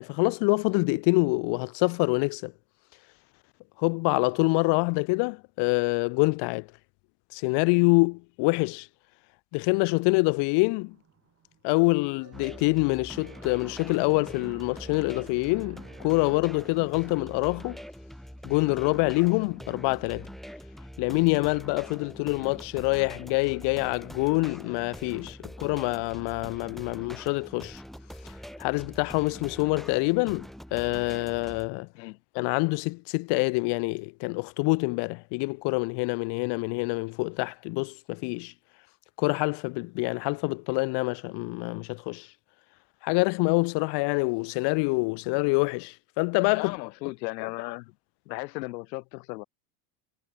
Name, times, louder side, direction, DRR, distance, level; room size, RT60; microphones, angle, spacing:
voice 1, 0.0-2.5 3.8-6.7 7.3-8.9 9.5-10.9 11.6-17.8 18.4-20.3 21.0-27.8 28.6-31.9 32.3-38.5 39.2-42.3 43.0-46.7, left 29 dB, 55° left, 1.3 m, -26 dB
sound 1, 10.9-17.8, right 8 dB, 30° right, 7.5 m, -54 dB
sound 2, 12.3-31.7, equal, ahead, 2.4 m, -44 dB
voice 2, 46.5-47.9 48.3-49.4, left 22 dB, 85° left, 1.3 m, -36 dB
supercardioid pair, 135°, 49 cm